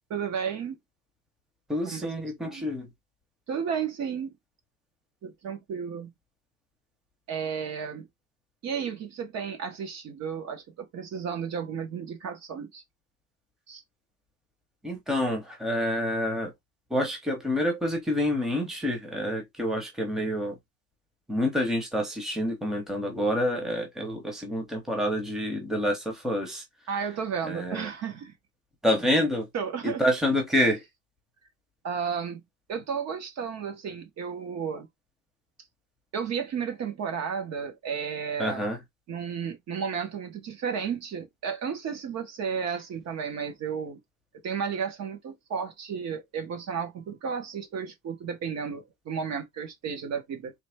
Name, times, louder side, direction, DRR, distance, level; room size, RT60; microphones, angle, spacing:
voice 1, 0.1-0.8 1.8-2.1 2.4-2.7 3.5-4.3 5.2-6.1 7.3-8.1 8.6-12.8 13.7-13.8 26.9-28.3 29.5-30.0 31.8-32.4 32.7-34.9 36.1-38.6 39.1-44.0 44.4-50.5, right 6 dB, 45° right, 1.3 m, -33 dB
voice 2, 1.7-2.9 14.8-16.5 16.9-20.6 21.3-26.6 27.5-27.9 28.8-29.5 29.8-30.8 38.4-38.8, left 1 dB, ahead, 1.0 m, -27 dB
3.9 x 3.3 x 3.5 m
cardioid pair, 175°, 37 cm